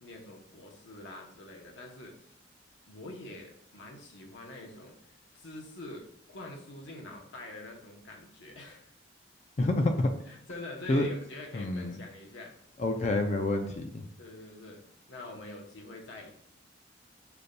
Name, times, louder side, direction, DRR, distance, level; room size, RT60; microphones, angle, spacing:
voice 1, 0.0-2.3 2.9-8.9 10.3-12.5 14.2-14.8 15.1-16.3, left 2 dB, 85° left, 1 dB, 0.9 m, -45 dB
voice 2, 9.6-10.1 10.9-11.1 11.5-12.0 12.8-14.0, left 2 dB, 40° left, 5 dB, 0.4 m, -28 dB
6.7 x 2.6 x 2.2 m, 0.67 s
head